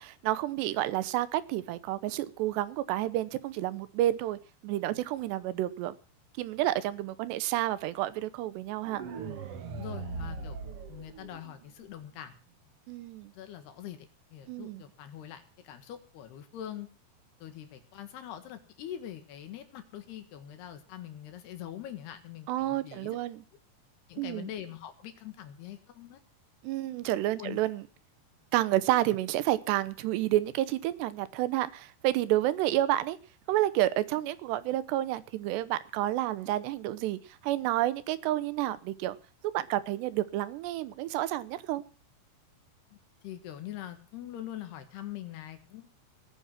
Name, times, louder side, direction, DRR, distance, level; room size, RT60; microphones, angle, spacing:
voice 1, 0.0-4.4 4.6-5.9 6.4-9.1 12.9-13.3 14.5-14.8 22.5-23.4 24.2-24.5 26.6-27.8 28.5-33.2 33.5-39.2 39.5-41.8, right 14 dB, 85° right, 15 dB, 3.0 m, -30 dB
sound 1, 8.8-11.8, right 5 dB, 65° right, 1.5 m, -40 dB
voice 2, 9.8-10.6 10.9-12.3 13.3-16.9 17.4-23.2 24.1-26.2 27.4-27.6 42.9-43.0 43.2-45.9, left 11 dB, 75° left, 8 dB, 3.7 m, -43 dB
19.0 x 9.2 x 5.9 m, 0.37 s
omnidirectional pair, 4.8 m